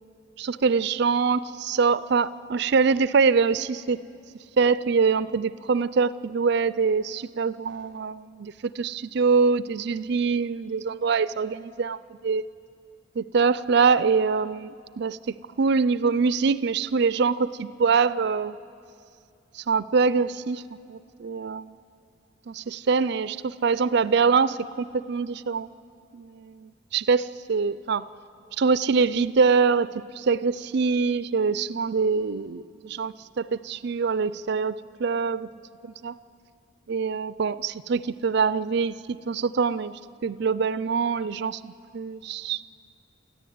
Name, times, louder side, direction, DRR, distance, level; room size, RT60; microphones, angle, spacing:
voice 1, 0.4-4.0 4.6-12.5 13.2-15.2 15.6-18.6 19.5-20.6 20.9-21.7 22.5-25.7 26.1-28.0 28.6-35.5 35.8-36.2 36.9-39.9 40.2-42.6, right 5 dB, 60° right, 16 dB, 0.5 m, -24 dB
29.0 x 14.0 x 9.4 m, 2.4 s
head